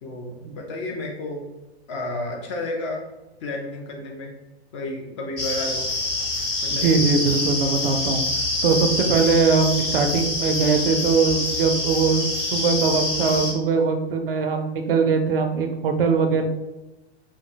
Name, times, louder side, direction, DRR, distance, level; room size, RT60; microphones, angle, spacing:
voice 1, 0.0-1.4 1.9-3.0 3.4-4.3 4.7-5.9 6.6-7.0, left 2 dB, 30° left, -1 dB, 0.4 m, -31 dB
sound 1, 5.4-13.5, left 2 dB, 55° left, 1.0 m, -26 dB
voice 2, 6.7-8.2 8.6-16.4, right 5 dB, 55° right, 5 dB, 0.4 m, -21 dB
2.5 x 2.2 x 2.7 m, 1.0 s
figure-of-eight pair, 100°, 33 cm